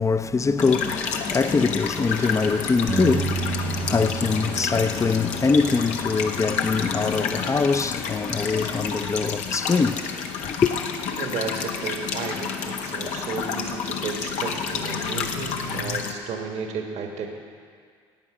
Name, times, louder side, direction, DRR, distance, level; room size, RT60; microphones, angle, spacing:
voice 1, 0.0-10.1 10.4-10.7, left 4 dB, 25° left, 0.6 m, -23 dB
sound 1, 0.6-16.1, left 6 dB, 70° left, 1.0 m, -30 dB
Bass guitar, 2.9-7.3 8.0-9.1, right 6 dB, 35° right, 0.7 m, -33 dB
voice 2, 11.2-17.3, right 5 dB, 65° right, 1.4 m, -33 dB
15.0 x 9.2 x 4.9 m
hypercardioid pair, 60°, 12 cm